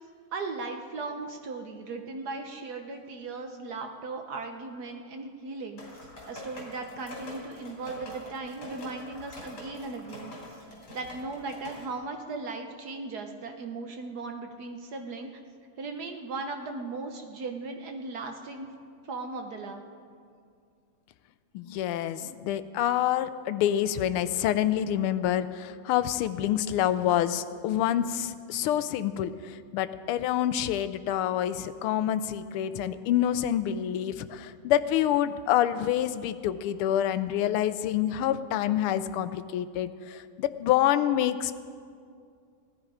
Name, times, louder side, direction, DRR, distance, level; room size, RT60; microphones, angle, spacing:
voice 1, 0.3-5.8 6.2-10.3 10.9-15.3 15.8-18.7 19.1-19.8, right 3 dB, 60° right, 4 dB, 1.2 m, -37 dB
sound 1, 5.8-11.8, left 1 dB, 65° left, 4.1 m, -44 dB
voice 2, 21.5-41.5, left 11 dB, 90° left, 13 dB, 1.5 m, -27 dB
17.0 x 13.0 x 4.9 m, 2.3 s
omnidirectional pair, 2.3 m